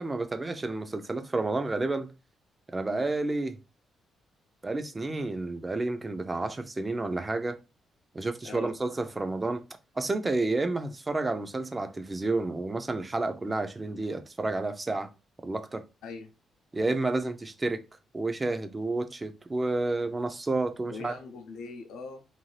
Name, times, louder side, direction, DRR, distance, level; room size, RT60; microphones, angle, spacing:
voice 1, 0.0-2.1 2.7-3.6 4.6-7.6 8.1-9.6 10.0-15.1 15.4-15.8 16.7-17.8 18.1-21.2, right 2 dB, 20° right, 0.4 m, -30 dB
voice 2, 8.4-8.8 16.0-16.3 20.9-22.2, left 4 dB, 85° left, 0.5 m, -41 dB
2.6 x 2.3 x 3.1 m
cardioid pair, 115°, 0 cm